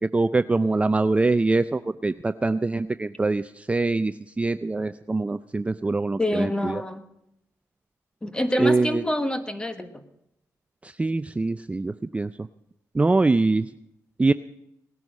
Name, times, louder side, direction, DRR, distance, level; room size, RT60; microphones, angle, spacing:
voice 1, 0.1-6.8 8.6-9.0 10.8-12.3 12.9-13.7 14.2-14.3, right 3 dB, 20° right, 12 dB, 0.4 m, -23 dB
voice 2, 6.2-7.0 8.2-10.0, left 1 dB, 15° left, 9 dB, 1.4 m, -26 dB
18.0 x 11.0 x 5.3 m, 0.80 s
cardioid pair, 80°, 6 cm